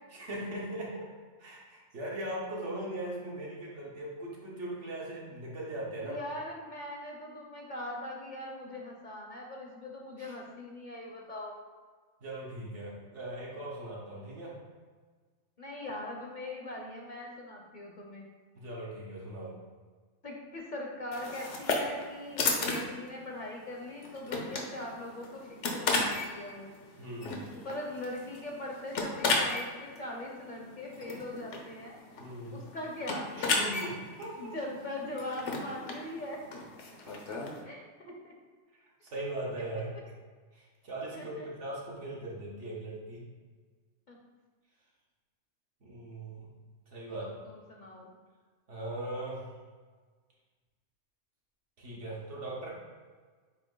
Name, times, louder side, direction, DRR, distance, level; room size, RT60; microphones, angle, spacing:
voice 1, 0.1-1.1 1.4-6.2 10.2-10.3 12.2-14.5 18.5-19.6 27.0-27.4 32.2-32.6 33.3-34.4 37.1-37.4 39.0-39.9 40.5-43.3 45.8-46.5 46.9-47.4 48.7-49.5 51.8-52.7, right 1 dB, 70° right, -5 dB, 1.7 m, -39 dB
voice 2, 6.0-11.5 15.6-18.3 20.2-26.7 27.6-32.0 32.5-33.3 34.4-36.4 37.7-37.8 38.2-38.3 41.1-41.5 44.1-44.2 47.1-48.1, left 1 dB, 45° left, 0 dB, 0.8 m, -41 dB
sound 1, 21.1-37.6, left 3 dB, 70° left, 1.1 m, -35 dB
8.2 x 3.0 x 3.8 m, 1.5 s
omnidirectional pair, 1.3 m